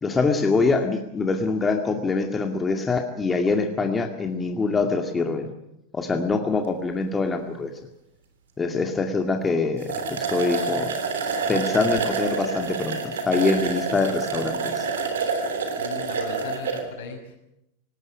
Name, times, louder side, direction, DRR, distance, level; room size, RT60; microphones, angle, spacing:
voice 1, 0.0-5.5 5.9-7.7 8.6-10.9 11.5-13.0 13.3-14.9, left 4 dB, 20° left, 4 dB, 2.2 m, -24 dB
sound 1, 9.5-9.6 9.8-16.8, right 4 dB, 75° right, 3.3 m, -27 dB
voice 2, 15.8-17.3, left 5 dB, 70° left, 4 dB, 5.7 m, -38 dB
19.0 x 18.5 x 8.6 m, 0.81 s
hypercardioid pair, 90°, 0 cm